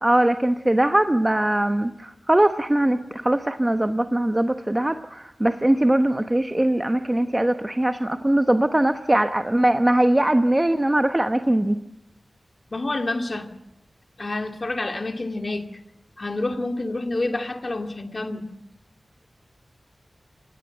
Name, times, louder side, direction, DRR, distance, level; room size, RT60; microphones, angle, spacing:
voice 1, 0.0-11.8, right 1 dB, 20° right, 8 dB, 1.0 m, -21 dB
voice 2, 12.7-13.5 14.2-15.7 16.2-18.5, left 2 dB, 45° left, 6 dB, 2.4 m, -28 dB
27.0 x 17.5 x 7.8 m, 0.81 s
wide cardioid pair, 60°, 0 cm